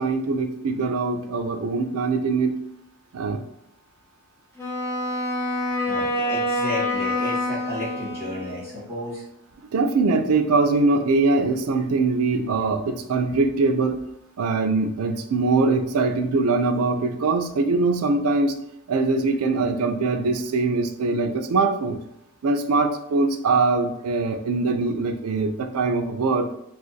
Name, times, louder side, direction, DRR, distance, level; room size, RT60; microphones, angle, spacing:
voice 1, 0.0-2.6 3.1-3.4 9.7-14.0 14.4-18.6 18.9-22.0 22.4-26.5, right 3 dB, 80° right, 7 dB, 0.4 m, -22 dB
Wind instrument woodwind instrument, 4.6-8.7, left 1 dB, 10° left, 0.6 m, -26 dB
voice 2, 5.9-9.2, left 1 dB, 10° right, -14 dB, 1.1 m, -32 dB
2.4 x 2.4 x 3.9 m, 0.81 s
head